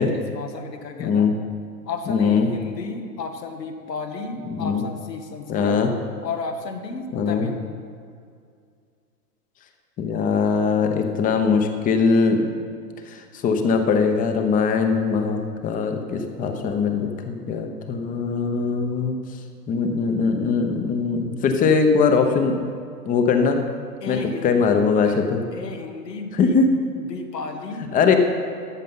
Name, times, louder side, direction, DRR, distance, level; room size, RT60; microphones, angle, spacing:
voice 1, 0.1-1.3 1.8-5.8 6.2-7.6 24.0-24.5 25.0-25.2 25.5-26.6 27.1-27.9, left 4 dB, 85° left, 4 dB, 1.8 m, -33 dB
voice 2, 1.0-1.3 2.1-2.5 4.5-4.8 5.5-5.9 7.1-7.5 10.0-12.5 13.1-19.2 19.7-22.6 23.1-23.6 24.1-25.4 26.3-26.7 27.9-28.1, left 5 dB, 15° left, 6 dB, 0.9 m, -21 dB
14.0 x 9.1 x 5.6 m, 2.3 s
hypercardioid pair, 130°, 48 cm